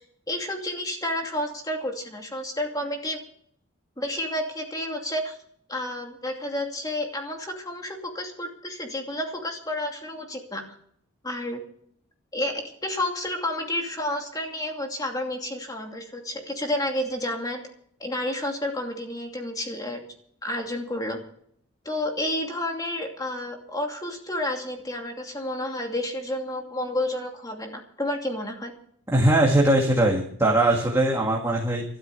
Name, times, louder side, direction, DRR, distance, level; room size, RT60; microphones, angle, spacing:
voice 1, 0.3-3.2 4.0-5.4 5.7-10.7 11.2-11.6 12.3-17.6 18.0-20.0 20.4-21.2 21.8-28.7, left 1 dB, 20° left, 2 dB, 2.6 m, -30 dB
voice 2, 29.1-31.8, right 1 dB, 15° right, -1 dB, 1.9 m, -20 dB
12.5 x 12.5 x 6.9 m, 0.63 s
head